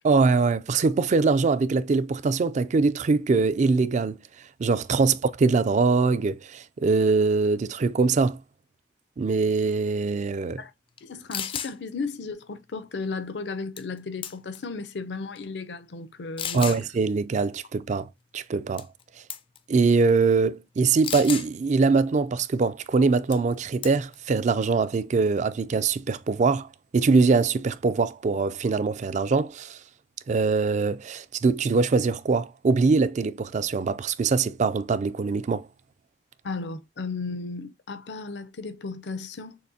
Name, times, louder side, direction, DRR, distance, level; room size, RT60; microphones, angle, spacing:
voice 1, 0.0-4.2 4.6-8.4 9.2-10.6 16.5-18.9 19.7-26.7 26.9-29.8 30.3-35.7, right 4 dB, 40° right, 0.4 m, -23 dB
voice 2, 11.0-16.8 36.4-39.6, left 4 dB, 70° left, 0.6 m, -35 dB
sound 1, 11.0-11.1 11.3-11.7 13.8-14.0 14.2-14.6 15.3-15.4 16.4-16.8 18.8-19.0 19.3-19.6 21.0-21.5 23.3-23.5 23.8-24.1, left 9 dB, 30° left, 0.4 m, -33 dB
6.5 x 2.7 x 2.7 m
head